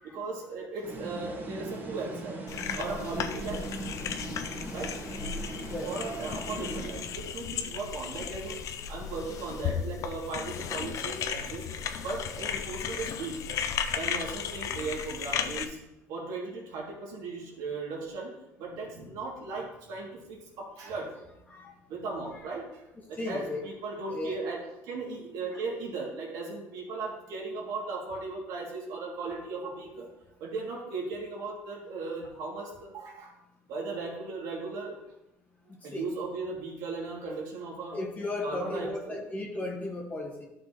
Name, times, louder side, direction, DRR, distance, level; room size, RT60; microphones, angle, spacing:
voice 1, 0.0-2.4 2.8-3.7 4.7-5.0 5.8-8.6 8.9-11.7 12.0-13.4 13.9-15.8 16.1-18.3 18.6-21.1 21.9-22.8 23.1-30.1 30.4-33.3 33.7-35.0 35.8-38.0 38.4-39.2, right 3 dB, 70° right, -1 dB, 2.6 m, -37 dB
sound 1, 0.8-7.4, right 2 dB, 35° right, 2.0 m, -40 dB
sound 2, 2.5-15.6, left 7 dB, 55° left, 0.7 m, -35 dB
voice 2, 23.2-23.6 24.1-24.4 25.5-25.6 35.8-36.1 37.2-37.3 37.9-40.4, left 2 dB, 25° left, -1 dB, 1.7 m, -35 dB
11.5 x 6.1 x 3.1 m, 0.91 s
supercardioid pair, 90°, 6 cm